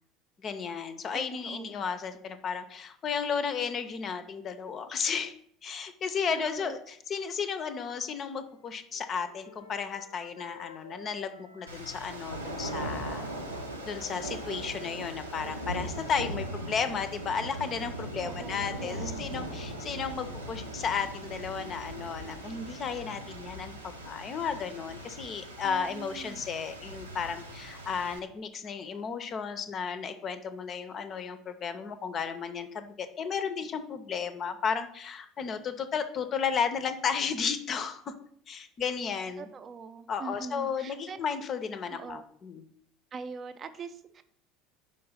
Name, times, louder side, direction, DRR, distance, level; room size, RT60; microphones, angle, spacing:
voice 1, 0.4-5.3 5.6-13.3 13.8-38.1 38.5-39.5 40.1-42.7, left 6 dB, 40° left, 10 dB, 0.6 m, -34 dB
voice 2, 1.1-1.8 6.3-6.8 18.2-19.4 25.6-26.4 39.4-41.2 41.9-42.3 43.1-44.2, right 5 dB, 35° right, 10 dB, 0.5 m, -43 dB
Wind instrument woodwind instrument, 8.4-12.0 12.3-16.1, left 3 dB, 80° left, 0.4 m, -53 dB
sound 1, 11.7-28.2, right 1 dB, 85° right, 0.6 m, -39 dB
5.4 x 3.8 x 5.6 m, 0.65 s
figure-of-eight pair, 65°, 0 cm